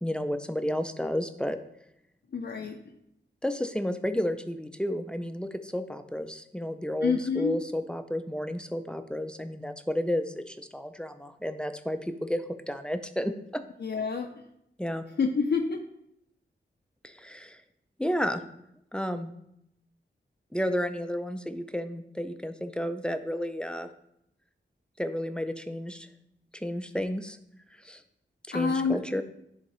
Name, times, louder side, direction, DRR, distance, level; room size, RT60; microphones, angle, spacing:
voice 1, 0.0-1.6 3.4-13.6 14.8-15.0 17.0-17.6 18.0-18.4 18.9-19.3 20.5-23.9 25.0-26.1 26.5-27.4 27.8-28.0 28.5-29.2, equal, 5° left, 9 dB, 0.4 m, -32 dB
voice 2, 2.3-2.8 7.0-7.6 13.8-14.3 15.2-15.8 28.5-29.0, left 5 dB, 60° left, 2 dB, 0.5 m, -27 dB
10.5 x 3.7 x 3.1 m, 0.77 s
wide cardioid pair, 75°, 20 cm